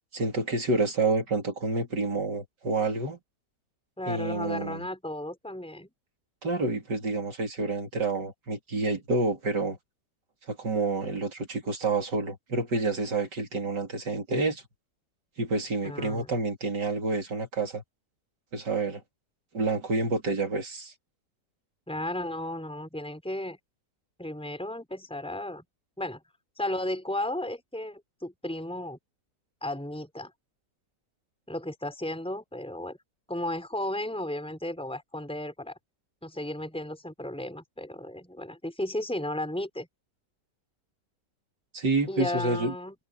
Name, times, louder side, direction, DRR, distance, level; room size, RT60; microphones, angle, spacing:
voice 1, 0.1-3.2 4.1-4.8 6.4-9.8 10.5-14.6 15.4-17.8 18.5-19.0 19.5-20.9 41.7-42.7, right 3 dB, 80° right, 4.1 m, -28 dB
voice 2, 4.0-5.9 15.8-16.3 21.9-23.6 24.2-25.6 26.0-26.2 26.6-29.0 29.6-30.3 31.5-33.0 33.3-35.8 36.2-39.9 42.1-42.9, left 1 dB, 5° left, 4.9 m, -34 dB
omnidirectional pair, 1.8 m